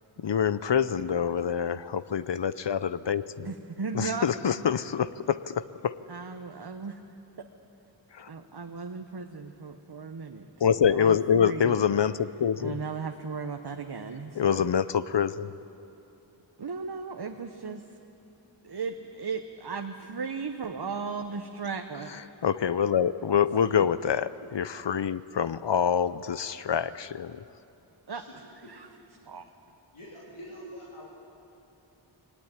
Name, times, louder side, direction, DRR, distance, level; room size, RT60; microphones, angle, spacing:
voice 1, 0.2-3.5 3.9-5.9 8.1-8.3 10.6-12.8 14.3-15.5 22.1-27.4, left 7 dB, 60° left, 15 dB, 0.7 m, -26 dB
voice 2, 3.4-4.3 6.1-7.0 8.3-10.5 10.8-11.8 12.6-14.6 16.6-17.8 18.6-22.1 23.7-23.8 28.1-28.9 29.2-29.5, right 5 dB, 55° right, 5 dB, 1.1 m, -36 dB
voice 3, 29.9-31.1, equal, 85° left, -6 dB, 3.3 m, -45 dB
21.0 x 17.5 x 9.7 m, 2.8 s
wide cardioid pair, 50°, 48 cm